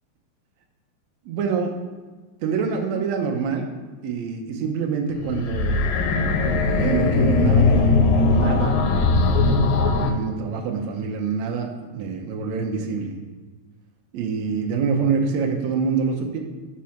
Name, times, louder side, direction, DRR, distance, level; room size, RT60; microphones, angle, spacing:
voice 1, 1.2-1.7 2.4-3.7 4.0-5.8 6.4-8.8 10.0-13.1 14.1-16.4, right 5 dB, 75° right, 1 dB, 1.7 m, -26 dB
sound 1, 5.2-10.1, left 3 dB, 80° left, 2.2 m, -19 dB
5.8 x 4.7 x 6.3 m, 1.3 s
omnidirectional pair, 4.1 m